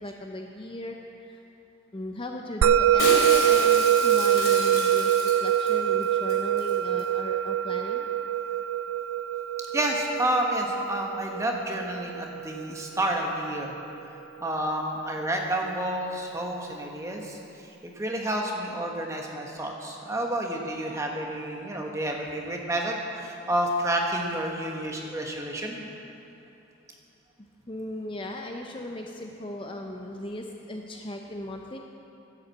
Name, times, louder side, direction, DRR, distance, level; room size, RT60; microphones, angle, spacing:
voice 1, 0.0-1.4 1.9-8.1 27.4-31.8, left 1 dB, 25° left, 2 dB, 0.6 m, -37 dB
Musical instrument, 2.6-13.2, right 9 dB, 90° right, 0.3 m, -24 dB
Shatter, 3.0-5.7 6.0-6.1 6.3-6.7 7.0-7.1, left 2 dB, 85° left, 2.7 m, -31 dB
voice 2, 9.7-13.7 14.4-17.4 18.0-25.8, right 1 dB, 15° right, 0 dB, 1.1 m, -29 dB
11.0 x 8.2 x 7.3 m, 2.9 s
head